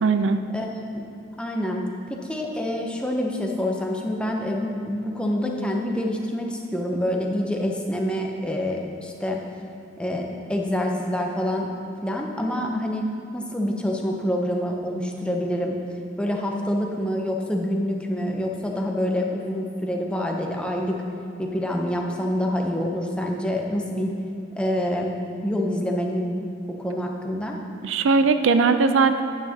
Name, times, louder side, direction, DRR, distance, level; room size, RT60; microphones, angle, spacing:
voice 1, 0.0-0.4 27.8-29.2, right 4 dB, 85° right, 9 dB, 0.4 m, -19 dB
voice 2, 0.5-1.0 1.4-1.8 2.1-9.4 10.0-11.7 12.0-15.8 16.2-21.0 21.4-24.1 24.6-25.1 25.4-26.5 26.8-27.6, left 1 dB, 5° left, 0 dB, 0.6 m, -26 dB
9.2 x 9.0 x 2.8 m, 2.5 s
head